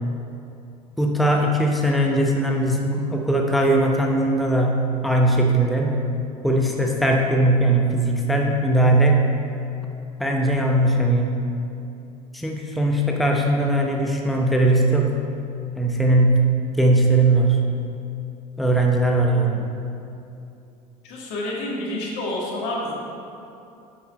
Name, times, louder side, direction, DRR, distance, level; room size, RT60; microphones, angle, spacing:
voice 1, 1.0-4.8 5.0-6.0 6.4-9.2 10.2-11.3 12.3-15.1 15.8-16.4 16.8-17.6 18.6-19.7, right 1 dB, ahead, 0 dB, 0.8 m, -19 dB
voice 2, 21.0-22.9, left 1 dB, 60° left, -3 dB, 1.9 m, -28 dB
8.5 x 5.8 x 4.2 m, 2.7 s
hypercardioid pair, 70°, 20 cm